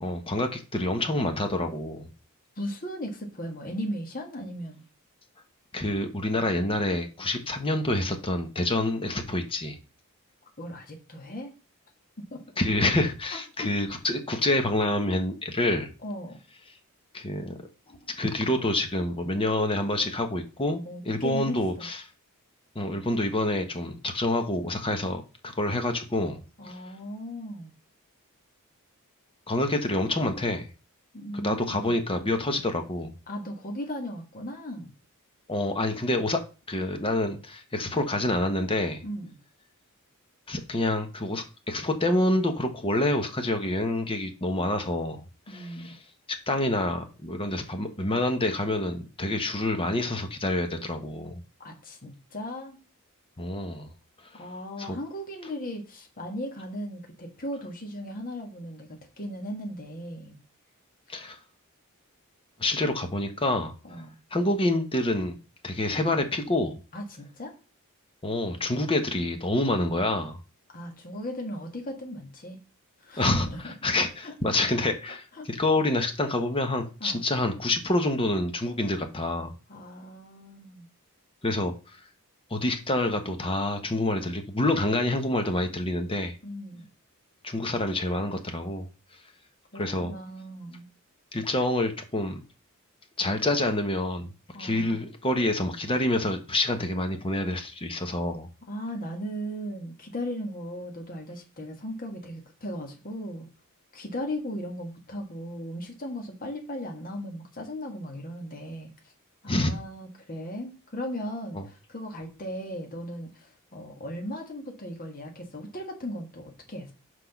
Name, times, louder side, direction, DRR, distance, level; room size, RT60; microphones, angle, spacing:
voice 1, 0.0-2.1 5.7-9.8 12.6-15.9 17.1-17.6 17.9-22.1 22.7-26.8 29.5-30.7 31.3-33.1 35.5-36.4 36.7-39.0 40.5-46.0 46.5-51.4 53.4-53.9 54.8-55.0 61.1-61.4 62.6-63.7 64.3-65.4 65.6-66.8 68.2-70.4 73.2-73.5 73.8-79.5 81.4-81.7 82.5-86.3 87.4-88.9 89.7-90.1 91.3-92.4 93.2-94.3 94.6-98.5 109.5-109.7 111.5-111.6, left 1 dB, 25° left, 1.0 m, -27 dB
voice 2, 2.6-4.8 10.6-11.5 12.3-12.4 13.3-13.7 16.0-16.4 20.8-21.9 26.6-27.7 31.1-31.9 33.3-34.9 39.0-39.3 45.5-45.9 51.6-52.8 54.3-60.4 63.8-64.2 66.9-67.5 70.7-72.6 73.0-73.7 74.2-74.9 75.3-75.5 77.0-77.2 79.7-80.9 86.4-86.9 89.7-90.9 94.5-95.0 98.7-103.5 103.9-108.9 109.4-116.9, equal, 40° left, 1.7 m, -37 dB
6.0 x 4.9 x 5.9 m
head